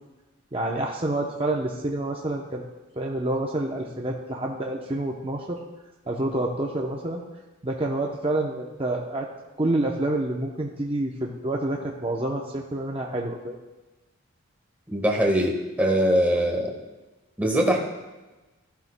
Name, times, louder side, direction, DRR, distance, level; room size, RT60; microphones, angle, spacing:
voice 1, 0.5-2.6 3.0-5.6 6.1-7.2 7.6-9.3 9.6-13.6, right 1 dB, 25° right, -1 dB, 0.7 m, -28 dB
voice 2, 14.9-16.7 17.4-17.8, equal, 10° right, 0 dB, 1.3 m, -22 dB
14.0 x 12.0 x 2.2 m, 1.1 s
head